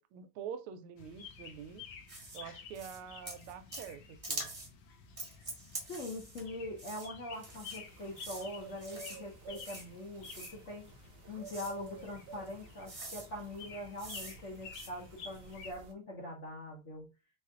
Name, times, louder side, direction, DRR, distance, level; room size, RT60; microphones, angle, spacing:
voice 1, 0.0-1.8 2.3-4.5, right 8 dB, 85° right, 1.5 m, -46 dB
sound 1, 1.0-15.7, left 5 dB, 75° left, 1.2 m, -52 dB
sound 2, 2.1-2.4 2.7-3.0 3.3-3.9 4.2-4.7 5.2-6.5 6.8-7.1 7.4-7.8 8.2-8.4 8.8-9.2 9.5-9.8 10.2-10.5 11.4-11.7 12.5-12.6 12.9-13.3 14.0-14.4 14.7-14.9, right 2 dB, 20° right, 1.0 m, -44 dB
voice 2, 5.9-10.9 11.3-17.1, left 1 dB, 55° left, 0.9 m, -43 dB
sound 3, 7.3-15.9, right 4 dB, 65° right, 1.2 m, -53 dB
4.4 x 2.4 x 3.6 m
omnidirectional pair, 2.4 m